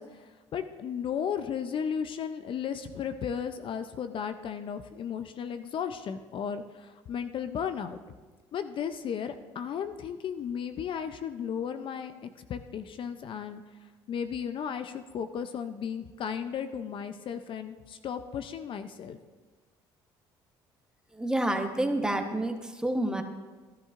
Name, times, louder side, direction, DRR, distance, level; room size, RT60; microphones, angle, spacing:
voice 1, 0.0-8.0 8.5-13.6 14.1-19.2, left 7 dB, 50° left, 9 dB, 0.6 m, -35 dB
voice 2, 21.1-23.2, right 1 dB, 5° right, 5 dB, 1.1 m, -28 dB
13.0 x 11.5 x 2.5 m, 1.3 s
supercardioid pair, 80°, 11 cm